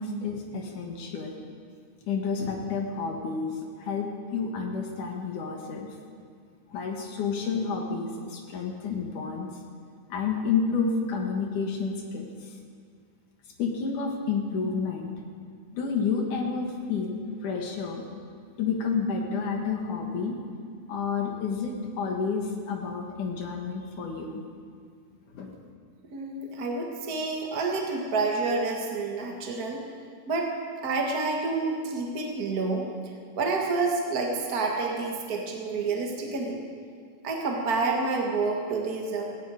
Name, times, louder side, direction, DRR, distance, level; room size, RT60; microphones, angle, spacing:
voice 1, 0.0-1.4 2.1-5.9 6.7-9.5 10.1-12.5 13.6-15.2 15.7-18.0 18.6-20.3 20.9-24.4 25.3-25.5, left 5 dB, 60° left, 2 dB, 2.8 m, -30 dB
voice 2, 26.1-29.8 30.3-30.6 30.8-36.6 37.2-39.3, right 3 dB, 65° right, 0 dB, 0.9 m, -29 dB
17.5 x 16.5 x 5.0 m, 2.2 s
omnidirectional pair, 4.4 m